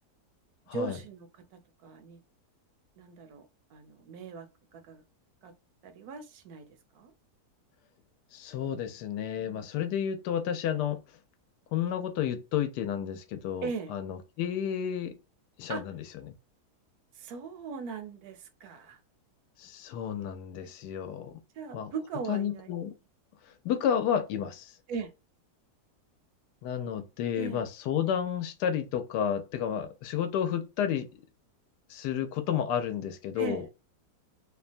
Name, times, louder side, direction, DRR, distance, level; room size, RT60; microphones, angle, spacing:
voice 1, 0.7-2.2 3.0-5.0 5.4-5.5 5.8-6.7 6.9-7.1 9.3-9.6 13.6-13.9 15.7-15.8 17.1-19.0 20.6-20.7 21.5-22.7 24.9-25.1 27.3-27.6 33.4-33.7, right 5 dB, 70° right, 1.0 m, -39 dB
voice 2, 8.3-11.0 11.7-15.1 15.6-16.3 19.6-21.4 21.7-21.9 22.3-22.9 23.5-24.7 26.6-31.1 31.9-33.6, left 9 dB, 85° left, 1.2 m, -31 dB
2.8 x 2.2 x 2.5 m
omnidirectional pair, 1.7 m